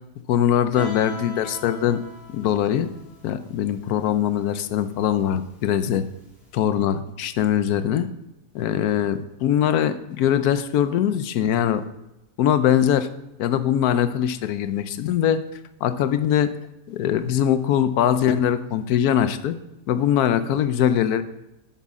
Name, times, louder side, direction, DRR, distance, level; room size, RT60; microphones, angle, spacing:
voice 1, 0.3-2.0 2.3-2.9 3.2-6.0 6.5-8.1 8.5-11.8 12.4-13.1 13.4-15.4 15.8-16.5 16.9-19.5 19.9-21.2, left 10 dB, 75° left, 12 dB, 1.0 m, -22 dB
Guitar, 0.8-6.5, left 2 dB, ahead, 2.7 m, -42 dB
10.0 x 8.2 x 3.6 m, 0.92 s
omnidirectional pair, 1.7 m